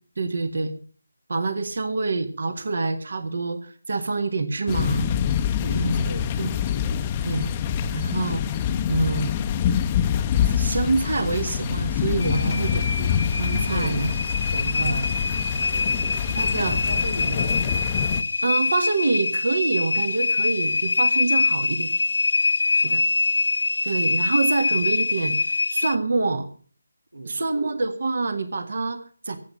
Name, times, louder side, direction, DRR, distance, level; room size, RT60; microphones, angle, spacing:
voice 1, 0.2-0.7 1.3-5.1 5.7-5.9 6.4-6.5 7.2-7.5 7.9-8.4 8.9-9.4 10.4-13.1 13.4-14.1 14.8-14.9 16.3-16.8 18.4-21.9 22.7-23.0 23.8-25.4 25.7-26.5 27.3-29.4, right 3 dB, 60° right, 1.6 m, -26 dB
sound 1, 4.7-18.2, left 8 dB, 20° left, 0.8 m, -25 dB
voice 2, 5.6-6.3 12.4-12.9 13.7-14.1 14.4-15.4 15.7-17.6 22.8-23.0 27.1-27.4, right 2 dB, 90° right, 1.9 m, -37 dB
sound 2, 12.2-26.0, left 3 dB, 65° left, 0.7 m, -24 dB
15.0 x 8.7 x 6.9 m
figure-of-eight pair, 160°, 0 cm